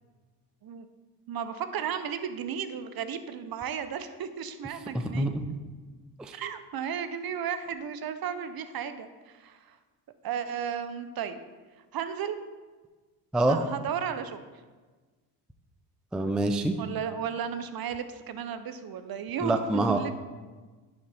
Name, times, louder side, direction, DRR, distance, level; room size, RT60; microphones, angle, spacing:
voice 1, 1.3-5.3 6.3-9.8 10.2-11.4 11.9-12.4 13.4-14.4 16.8-20.1, right 8 dB, 45° right, 10 dB, 0.6 m, -34 dB
voice 2, 4.9-5.5 6.2-6.3 13.3-13.6 16.1-16.8 19.4-20.0, right 2 dB, ahead, 7 dB, 0.4 m, -26 dB
10.5 x 4.0 x 3.4 m, 1.3 s
supercardioid pair, 60°, 50 cm